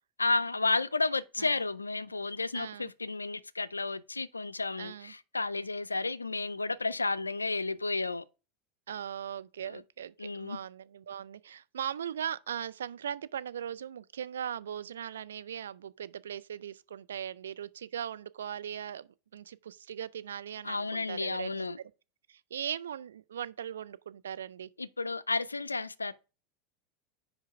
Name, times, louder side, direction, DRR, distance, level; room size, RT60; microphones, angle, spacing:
voice 1, 0.2-8.2 9.6-9.8 10.2-10.6 20.6-21.8 24.8-26.1, left 3 dB, 85° left, 0.3 m, -32 dB
voice 2, 2.5-2.9 4.8-5.1 8.9-21.7 22.3-24.7, right 9 dB, 75° right, 0.3 m, -39 dB
5.3 x 5.0 x 4.7 m
figure-of-eight pair, 85°, 0 cm